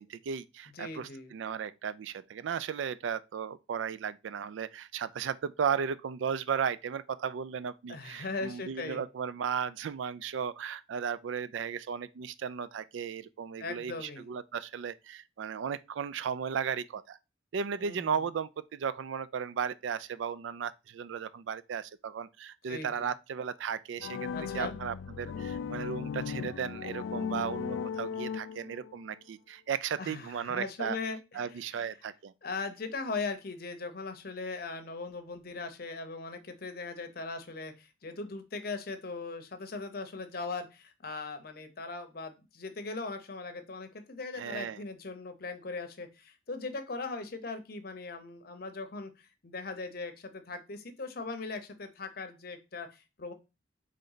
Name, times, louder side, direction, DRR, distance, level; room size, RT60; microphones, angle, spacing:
voice 1, 0.0-17.2 17.5-24.3 24.5-31.0 31.3-32.3 44.4-44.8, right 7 dB, 90° right, 0.3 m, -35 dB
voice 2, 0.7-1.3 7.9-9.0 13.6-14.3 17.8-18.2 22.7-23.1 24.3-24.7 30.0-31.9 32.4-53.3, left 3 dB, 55° left, 0.7 m, -39 dB
sound 1, 24.0-29.0, left 6 dB, 80° left, 0.3 m, -37 dB
3.9 x 3.3 x 3.8 m
head